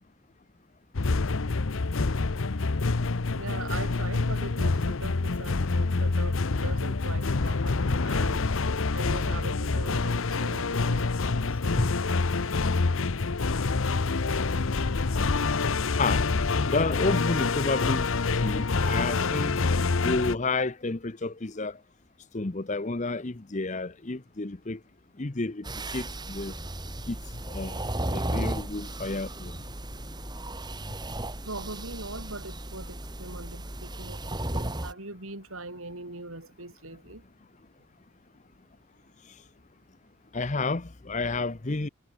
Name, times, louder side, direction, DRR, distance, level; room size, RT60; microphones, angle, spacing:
sound 1, 0.9-20.4, left 3 dB, 70° left, 0.8 m, -26 dB
voice 1, 3.3-8.5 8.9-11.9 31.4-37.2, right 2 dB, 75° right, 6.4 m, -41 dB
voice 2, 16.6-19.6 20.0-21.8 22.3-24.8 25.2-25.7 25.9-26.5 27.1-27.2 27.5-27.8 28.1-29.6 40.3-41.9, left 3 dB, 35° left, 0.8 m, -30 dB
sound 2, 25.6-34.9, right 1 dB, 20° right, 3.1 m, -35 dB
head